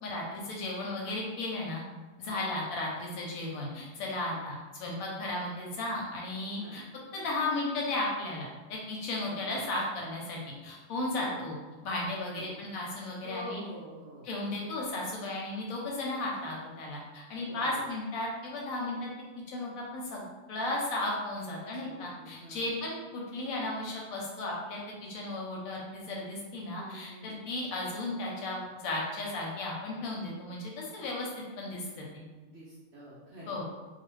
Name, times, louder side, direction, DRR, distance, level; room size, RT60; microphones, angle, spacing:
voice 1, 0.0-1.8 2.2-6.8 7.1-11.6 11.8-13.6 14.3-19.1 19.5-32.2 33.5-33.6, left 2 dB, 70° left, -2 dB, 0.9 m, -35 dB
voice 2, 2.2-2.6 4.2-4.4 6.5-6.8 9.2-9.7 11.0-11.5 12.3-12.6 13.2-14.3 17.5-17.9 21.4-22.7 26.7-27.4 32.5-33.6, equal, 65° right, -7 dB, 0.7 m, -47 dB
2.4 x 2.3 x 3.1 m, 1.2 s
omnidirectional pair, 1.7 m